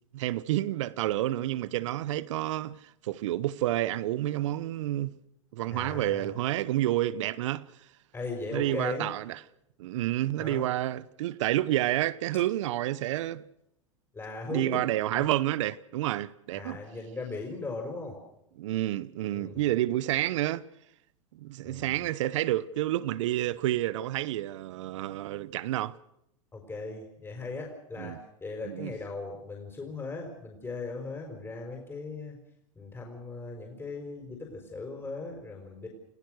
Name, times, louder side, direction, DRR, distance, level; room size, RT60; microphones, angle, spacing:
voice 1, 0.1-5.1 5.5-7.6 8.5-9.4 9.8-13.4 14.5-16.8 18.6-20.6 21.3-26.0 28.0-28.2 28.6-28.9, right 14 dB, 70° right, 1.0 m, -29 dB
voice 2, 5.7-6.3 8.1-9.1 10.4-10.7 14.1-14.8 15.1-15.3 16.5-18.2 19.3-19.6 21.6-22.1 26.5-32.4 32.7-35.9, left 3 dB, 15° left, 5.1 m, -38 dB
29.5 x 16.5 x 6.6 m
hypercardioid pair, 100°, 16 cm